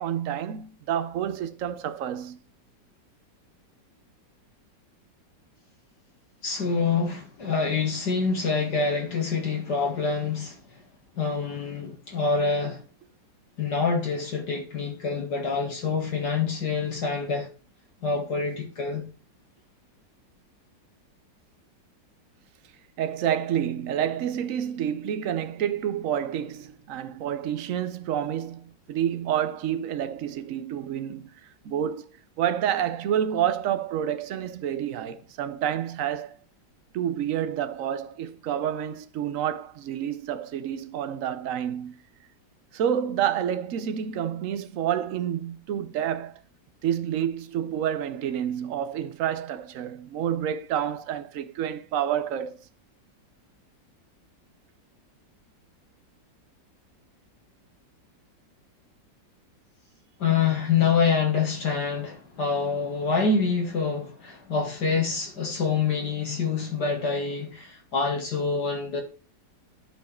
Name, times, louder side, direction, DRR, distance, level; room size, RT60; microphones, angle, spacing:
voice 1, 0.0-2.4 23.0-31.3 31.6-32.1 32.4-36.4 36.9-42.0 42.7-46.4 46.8-52.6, right 10 dB, 60° right, 0.9 m, -29 dB
voice 2, 6.4-10.6 11.2-12.8 13.6-17.5 18.0-19.0 60.2-69.0, left 5 dB, 65° left, 2.4 m, -26 dB
11.5 x 4.7 x 4.3 m
omnidirectional pair, 1.9 m